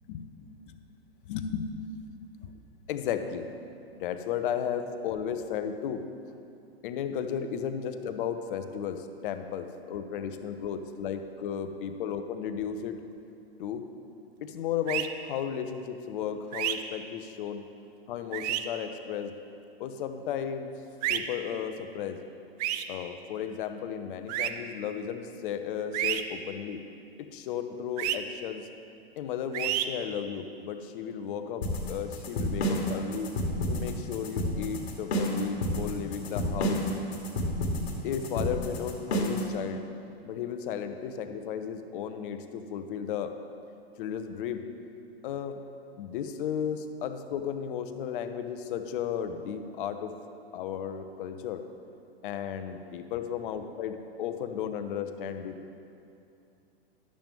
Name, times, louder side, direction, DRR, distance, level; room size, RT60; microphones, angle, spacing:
voice 1, 1.3-1.9 2.4-2.5 2.9-3.5 3.9-6.0 6.8-13.0 13.6-13.8 14.4-17.7 18.1-19.3 19.8-20.7 21.1-22.2 22.9-26.8 27.3-28.7 29.2-33.3 33.7-36.8 38.0-39.8 40.2-43.3 44.0-44.6 45.2-45.6 46.0-50.1 50.5-51.6 52.2-55.5, left 8 dB, 55° left, 8 dB, 0.7 m, -34 dB
sound 1, 14.9-15.1 16.5-16.7 18.3-18.6 21.0-21.2 22.6-22.8 24.3-24.5 25.9-26.2 28.0-28.2 29.5-29.8, right 13 dB, 40° right, 0.4 m, -29 dB
sound 2, 31.6-39.5, equal, 80° left, 1.6 m, -29 dB
11.0 x 7.5 x 3.5 m, 2.6 s
hypercardioid pair, 125°, 32 cm